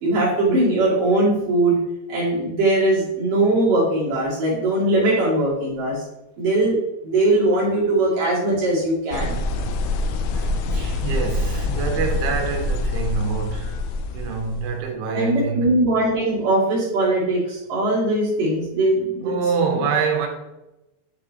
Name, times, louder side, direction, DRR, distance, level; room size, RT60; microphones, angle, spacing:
voice 1, 0.0-1.8 2.1-6.0 6.4-6.8 7.0-9.4 15.1-19.3, right 2 dB, 50° right, 3.0 m, -20 dB
sound 1, 9.1-14.7, left 2 dB, 85° left, 2.6 m, -25 dB
voice 2, 10.3-13.8 14.1-15.9 19.2-20.3, right 5 dB, 80° right, 3.3 m, -26 dB
9.8 x 3.8 x 3.0 m
omnidirectional pair, 5.8 m